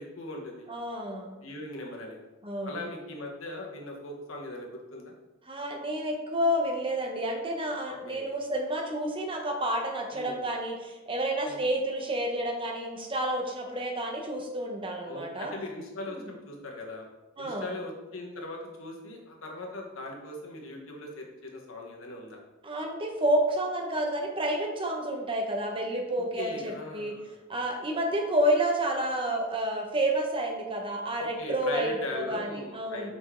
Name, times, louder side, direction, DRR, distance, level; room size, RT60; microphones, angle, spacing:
voice 1, 0.0-0.7 1.4-2.2 2.6-5.1 7.9-8.3 10.1-10.4 11.4-11.6 15.1-17.1 17.4-22.4 26.4-27.4 31.2-33.1, left 2 dB, 85° left, 0 dB, 1.2 m, -39 dB
voice 2, 0.7-1.4 2.4-2.8 5.5-15.5 16.1-16.3 17.4-17.7 22.6-27.1 27.5-33.1, right 1 dB, 25° right, 2 dB, 0.9 m, -30 dB
5.3 x 5.2 x 3.7 m, 1.1 s
head